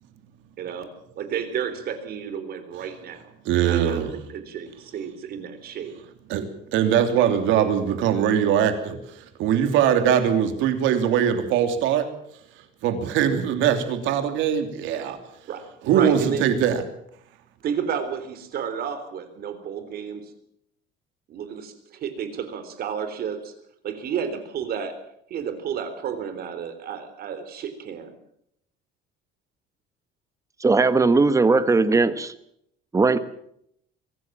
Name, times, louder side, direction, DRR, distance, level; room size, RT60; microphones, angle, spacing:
voice 1, 0.6-6.0 15.5-16.5 17.6-20.3 21.3-23.5 23.8-25.0 25.3-28.1, right 7 dB, 50° right, 3.8 m, -32 dB
voice 2, 3.4-4.1 6.3-6.4 6.7-12.1 12.8-15.2 15.9-16.8, right 9 dB, 80° right, 3.1 m, -21 dB
voice 3, 30.6-32.3 32.9-33.2, right 3 dB, 15° right, 1.2 m, -18 dB
24.5 x 16.5 x 7.4 m
cardioid pair, 155°, 19 cm